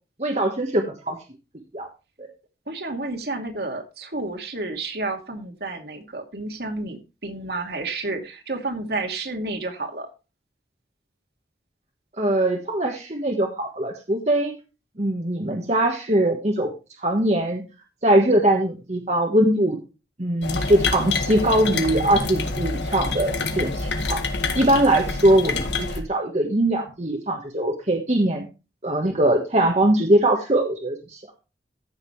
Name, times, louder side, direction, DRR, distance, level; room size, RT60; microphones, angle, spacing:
voice 1, 0.2-1.2 1.7-1.9 2.2-2.3 12.2-14.5 15.0-16.7 17.0-17.6 18.0-19.8 20.2-24.2 24.5-28.5 28.8-31.2, right 1 dB, 40° right, 2 dB, 1.4 m, -21 dB
voice 2, 2.7-10.1, right 2 dB, 65° right, 4 dB, 2.4 m, -31 dB
sound 1, 20.4-26.0, left 3 dB, 90° left, 1.8 m, -27 dB
14.5 x 6.6 x 3.2 m, 0.29 s
head